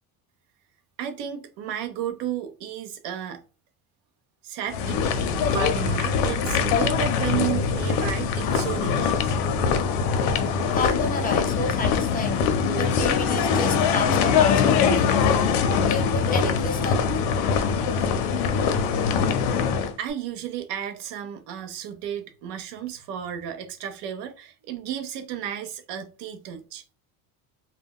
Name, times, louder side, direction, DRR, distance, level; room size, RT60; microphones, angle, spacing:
voice 1, 1.0-3.4 4.4-5.3 5.5-9.4 20.0-26.8, right 9 dB, 70° right, 0.6 m, -33 dB
sound 1, 4.7-19.9, left 6 dB, 85° left, 0.6 m, -23 dB
voice 2, 10.7-12.4 12.8-15.4 15.9-17.1, left 3 dB, 20° left, 0.4 m, -30 dB
2.2 x 2.1 x 3.5 m
cardioid pair, 130°, 43 cm